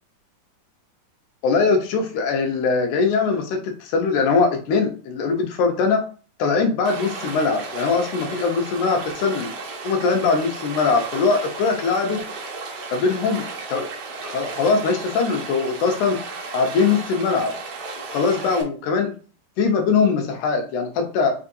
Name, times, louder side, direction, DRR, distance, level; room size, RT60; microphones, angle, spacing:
voice 1, 1.4-6.0 6.4-9.5 9.8-12.2 12.9-13.9 14.2-16.2 16.5-17.5 18.1-19.1 19.6-21.3, left 4 dB, 75° left, 3 dB, 2.3 m, -21 dB
Stream, 6.9-18.6, right 4 dB, 75° right, 1.3 m, -34 dB
4.6 x 3.9 x 2.6 m, 0.38 s
omnidirectional pair, 3.6 m